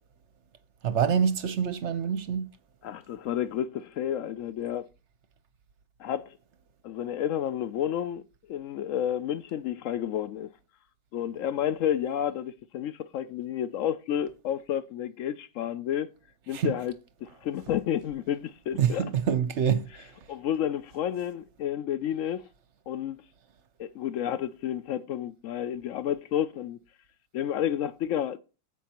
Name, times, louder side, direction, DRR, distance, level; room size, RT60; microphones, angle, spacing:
voice 1, 0.8-2.5 16.5-16.7 18.8-20.1, right 7 dB, 55° right, 0.8 m, -26 dB
voice 2, 2.8-4.9 6.0-6.4 6.8-10.5 11.1-16.1 16.5-19.1 20.3-22.5 22.9-23.2 23.8-26.8 27.3-28.4, left 10 dB, 90° left, 0.6 m, -31 dB
16.0 x 5.4 x 2.9 m
omnidirectional pair, 1.9 m